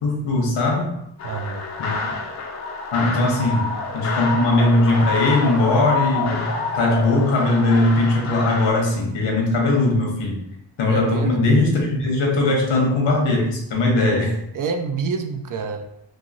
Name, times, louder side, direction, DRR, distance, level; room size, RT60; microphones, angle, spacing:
voice 1, 0.0-1.0 1.8-2.0 2.9-10.4 10.8-14.3, left 2 dB, 75° left, -1 dB, 1.1 m, -19 dB
sound 1, 1.2-8.7, left 3 dB, 40° left, 0.5 m, -28 dB
voice 2, 1.2-1.7 10.9-11.4 14.5-15.9, right 5 dB, 50° right, 6 dB, 0.4 m, -27 dB
3.0 x 2.7 x 2.6 m, 0.79 s
cardioid pair, 80°, 44 cm